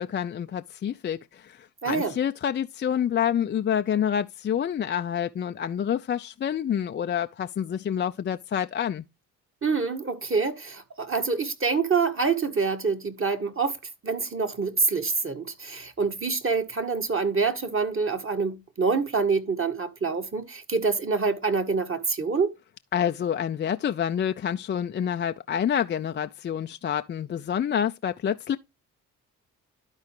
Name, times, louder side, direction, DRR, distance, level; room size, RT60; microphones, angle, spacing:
voice 1, 0.0-9.0 22.9-28.6, left 9 dB, 25° left, 0.4 m, -28 dB
voice 2, 1.8-2.1 9.6-13.8 14.0-22.5, right 4 dB, 30° right, 1.7 m, -26 dB
12.5 x 4.7 x 2.9 m
hypercardioid pair, 45°, 44 cm